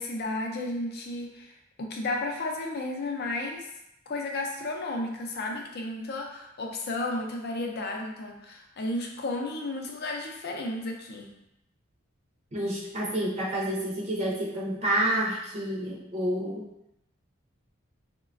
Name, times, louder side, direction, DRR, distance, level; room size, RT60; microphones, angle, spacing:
voice 1, 0.0-1.5 1.8-3.7 4.1-11.3, left 2 dB, 50° left, 1 dB, 0.5 m, -33 dB
voice 2, 12.5-16.7, right 1 dB, 35° right, -4 dB, 0.5 m, -29 dB
3.8 x 2.1 x 2.4 m, 0.84 s
head